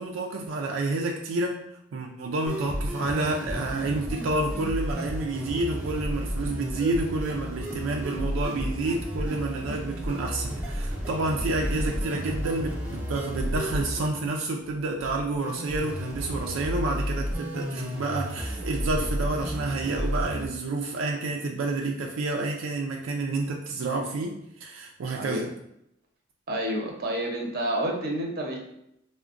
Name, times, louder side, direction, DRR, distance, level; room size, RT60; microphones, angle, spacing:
voice 1, 0.0-1.6 1.9-25.5, right 2 dB, 85° right, 1 dB, 0.4 m, -29 dB
sound 1, 2.5-20.5, equal, 10° right, 0.6 m, -32 dB
voice 2, 25.1-25.5 26.5-28.6, right 1 dB, 50° right, 0 dB, 0.7 m, -29 dB
4.5 x 2.1 x 2.5 m, 0.79 s
head